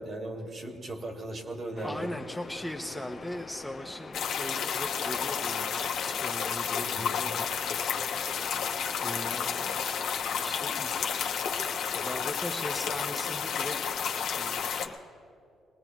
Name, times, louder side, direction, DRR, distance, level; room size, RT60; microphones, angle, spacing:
voice 1, 0.0-2.1 6.8-7.2, right 1 dB, 45° right, 3 dB, 2.0 m, -38 dB
sound 1, 1.7-15.0, left 4 dB, 35° left, 0.9 m, -45 dB
voice 2, 1.8-7.5 9.0-9.8 10.4-11.1 11.9-13.9 14.3-14.8, left 1 dB, ahead, 2 dB, 0.8 m, -39 dB
sound 2, 4.1-14.9, left 7 dB, 75° left, 1.1 m, -31 dB
21.5 x 19.0 x 3.1 m, 2.6 s
cardioid pair, 90°, 0 cm